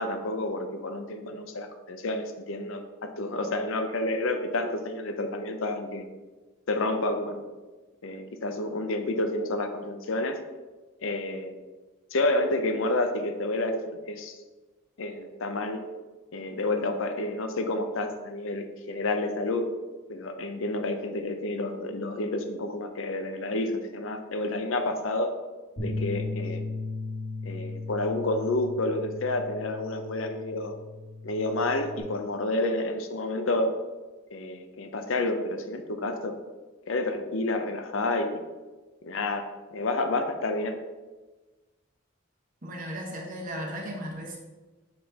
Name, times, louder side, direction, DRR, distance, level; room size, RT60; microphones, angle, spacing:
voice 1, 0.0-6.1 6.7-7.5 8.0-10.4 11.0-11.5 12.1-14.4 15.0-15.8 16.3-19.7 20.1-25.3 25.8-26.6 27.4-30.7 31.2-33.8 34.3-36.4 36.9-38.4 39.0-40.8, left 2 dB, 65° left, 7 dB, 0.6 m, -29 dB
Bass guitar, 25.8-32.0, left 3 dB, 50° left, 1.8 m, -36 dB
voice 2, 42.6-44.4, equal, 40° right, -1 dB, 1.1 m, -36 dB
6.5 x 5.7 x 2.8 m, 1.2 s
head